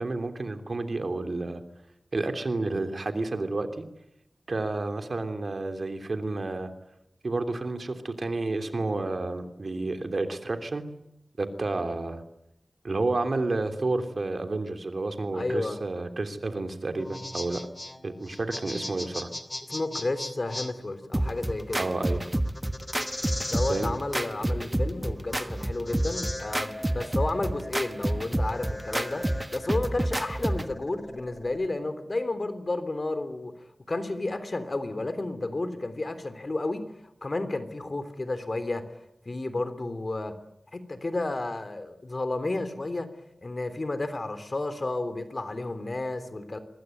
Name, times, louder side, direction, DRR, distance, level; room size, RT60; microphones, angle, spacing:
voice 1, 0.0-1.6 2.1-3.8 4.5-6.7 7.2-10.8 11.4-12.2 12.8-17.7 18.0-19.3 21.8-22.2 23.7-23.9, right 2 dB, 60° right, 7 dB, 3.2 m, -30 dB
voice 2, 15.3-15.8 19.7-21.8 23.5-29.2 29.5-39.0 39.2-40.4 40.7-43.1 43.4-46.6, left 2 dB, 45° left, 11 dB, 3.3 m, -32 dB
sound 1, 16.9-31.7, left 1 dB, 20° left, 2.9 m, -39 dB
sound 2, 21.1-30.7, right 1 dB, 15° right, 1.3 m, -29 dB
24.0 x 21.5 x 9.4 m, 0.82 s
wide cardioid pair, 90°, 0 cm